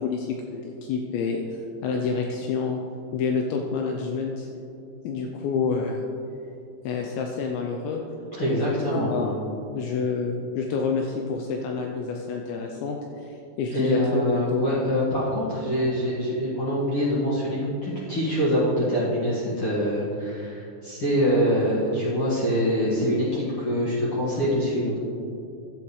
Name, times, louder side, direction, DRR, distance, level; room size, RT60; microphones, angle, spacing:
voice 1, 0.0-2.8 3.1-4.5 5.0-6.0 6.8-8.0 8.4-8.5 8.9-9.3 9.7-14.6, left 5 dB, 80° left, 1 dB, 2.8 m, -28 dB
voice 2, 8.3-9.3 13.7-25.0, equal, 60° left, -9 dB, 1.4 m, -24 dB
12.5 x 8.8 x 3.2 m, 2.6 s
omnidirectional pair, 5.4 m